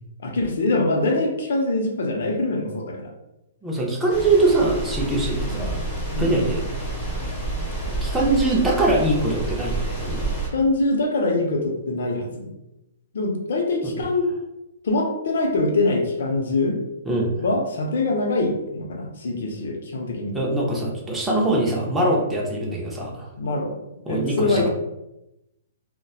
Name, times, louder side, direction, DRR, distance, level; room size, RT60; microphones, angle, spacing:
voice 1, 0.2-3.1 5.6-5.7 6.1-6.5 10.5-12.5 13.1-14.3 14.8-16.8 17.4-20.4 23.4-24.7, left 2 dB, 65° left, 2 dB, 0.6 m, -24 dB
voice 2, 3.6-5.8 6.2-6.6 7.9-10.3 13.8-14.0 17.1-17.3 20.3-23.3 24.1-24.7, right 2 dB, 5° right, -3 dB, 0.4 m, -23 dB
sound 1, 4.1-10.5, right 2 dB, 20° left, 0.8 m, -28 dB
2.7 x 2.1 x 2.3 m, 0.90 s
hypercardioid pair, 175°, 0 cm